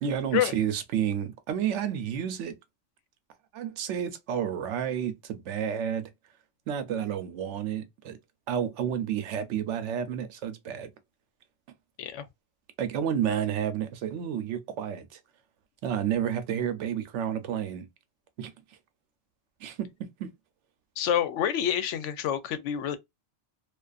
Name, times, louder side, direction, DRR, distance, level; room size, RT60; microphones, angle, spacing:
voice 1, 0.0-2.5 3.5-6.1 6.7-8.2 8.5-10.9 12.8-15.2 15.8-17.9 18.4-18.5 19.6-19.9 20.2-20.3, right 9 dB, 80° right, 0.9 m, -30 dB
voice 2, 21.0-23.0, left 10 dB, 85° left, 0.9 m, -27 dB
2.5 x 2.4 x 2.3 m
omnidirectional pair, 1.2 m